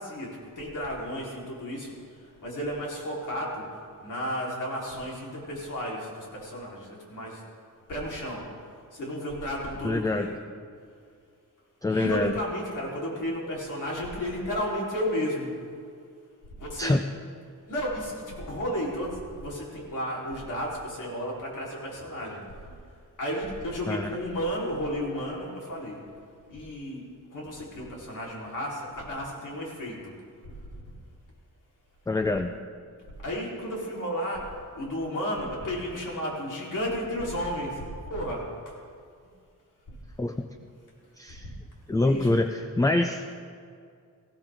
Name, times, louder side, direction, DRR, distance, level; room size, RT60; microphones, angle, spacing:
voice 1, 0.0-3.7 4.0-7.4 7.9-8.5 8.9-10.4 11.9-15.5 16.6-16.9 17.7-26.0 26.5-27.0 27.3-30.1 30.7-30.9 33.2-37.8 38.1-38.8 41.4-41.5 42.0-42.3, equal, 70° left, -4 dB, 3.8 m, -33 dB
voice 2, 9.8-10.3 11.8-12.4 16.8-17.0 23.9-24.2 32.1-32.5 40.2-40.5 41.2-41.5 41.9-42.5 42.8-43.2, left 2 dB, 10° left, 6 dB, 0.4 m, -25 dB
20.0 x 15.5 x 3.6 m, 2.3 s
wide cardioid pair, 160°, 32 cm